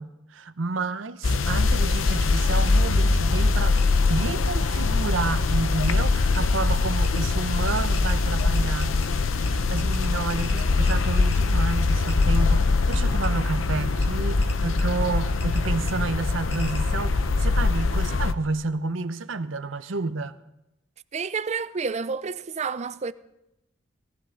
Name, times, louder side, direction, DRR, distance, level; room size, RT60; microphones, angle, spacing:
voice 1, 0.0-9.0 9.3-20.4, right 3 dB, 75° right, 0.7 m, -30 dB
sound 1, 1.2-18.3, left 3 dB, 80° left, 0.7 m, -22 dB
sound 2, 2.7-2.8 3.8-3.9 5.3-5.4 5.8-6.0 6.3-6.4 7.0-7.2 7.7-9.1 9.5-9.6 9.8-11.0 11.3-11.4 12.1-12.3 12.9-13.3 14.0-14.1 14.4-14.8 15.4-15.6 15.9-16.0 16.5-16.8, left 2 dB, 30° left, 2.2 m, -42 dB
voice 2, 21.1-23.1, right 5 dB, 35° right, 0.5 m, -29 dB
19.5 x 14.0 x 3.8 m
head